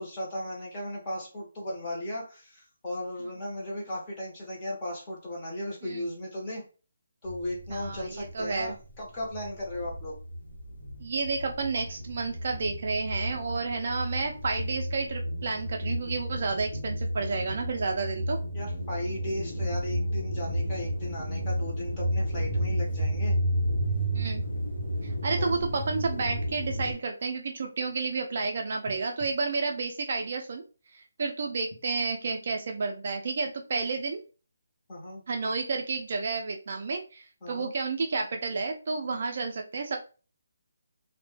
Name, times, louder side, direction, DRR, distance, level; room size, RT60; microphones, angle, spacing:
voice 1, 0.0-6.6 7.2-10.2 18.5-23.4 25.4-25.6 34.9-35.2 37.4-37.7, left 1 dB, 15° left, -5 dB, 0.6 m, -36 dB
sound 1, 7.2-8.9 9.2-26.9, equal, 60° left, 1.0 m, -32 dB
voice 2, 7.7-8.7 11.0-18.4 24.1-24.4 25.0-30.6 30.9-34.2 35.3-40.0, right 4 dB, 35° right, 2 dB, 0.3 m, -31 dB
2.1 x 2.0 x 3.0 m, 0.35 s
hypercardioid pair, 180°, 0 cm